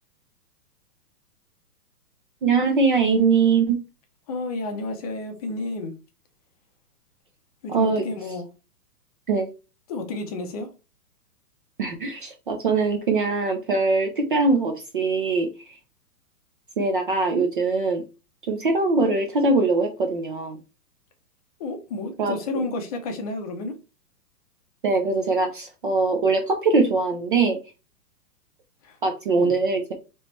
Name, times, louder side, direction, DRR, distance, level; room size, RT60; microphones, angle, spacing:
voice 1, 2.4-3.8 7.7-8.0 9.3-9.5 11.8-15.8 16.8-18.0 18.5-20.6 22.2-22.3 24.8-27.6 29.0-29.9, right 3 dB, 35° right, 0.5 m, -22 dB
voice 2, 4.3-5.9 7.6-8.5 9.9-10.7 21.6-23.7 28.8-29.0 29.4-29.5, left 2 dB, 25° left, 0.6 m, -31 dB
3.2 x 3.0 x 4.1 m
hypercardioid pair, 155°, 48 cm